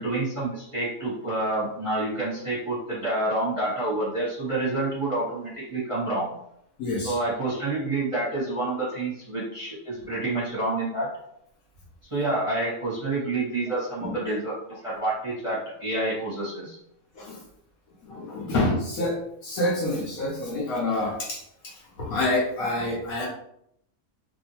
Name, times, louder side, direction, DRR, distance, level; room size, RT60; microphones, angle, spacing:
voice 1, 0.0-6.3 7.0-11.1 12.0-16.8, right 2 dB, 25° right, -9 dB, 1.0 m, -28 dB
voice 2, 6.8-7.2 14.0-14.3 17.1-17.4 18.0-23.3, left 2 dB, 65° left, -3 dB, 1.1 m, -28 dB
3.0 x 2.6 x 2.8 m, 0.75 s
omnidirectional pair, 1.7 m